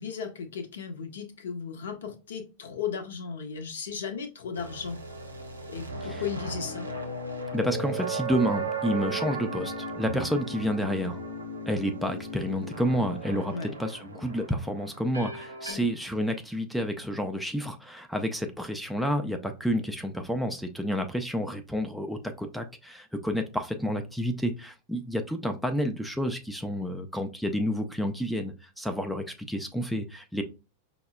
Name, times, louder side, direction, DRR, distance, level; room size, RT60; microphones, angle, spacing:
voice 1, 0.0-5.0 5.7-6.9 13.5-13.7 15.7-15.9, left 6 dB, 65° left, 0.6 m, -35 dB
sound 1, 4.5-15.7, right 2 dB, 85° right, 0.7 m, -36 dB
voice 2, 7.5-11.2 11.7-30.4, equal, ahead, 0.4 m, -30 dB
5.2 x 2.0 x 2.2 m
figure-of-eight pair, 90°, 0 cm